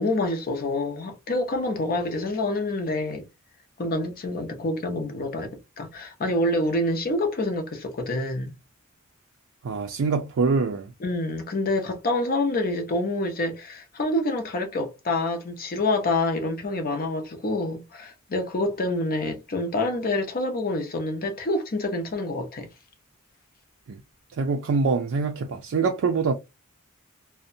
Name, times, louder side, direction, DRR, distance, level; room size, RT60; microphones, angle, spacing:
voice 1, 0.0-3.3 3.8-5.5 5.8-8.5 11.0-22.7, left 2 dB, 45° left, 0.6 m, -27 dB
voice 2, 9.6-10.9 23.9-24.0 24.4-26.3, right 4 dB, 60° right, 0.4 m, -24 dB
2.6 x 2.1 x 2.5 m
head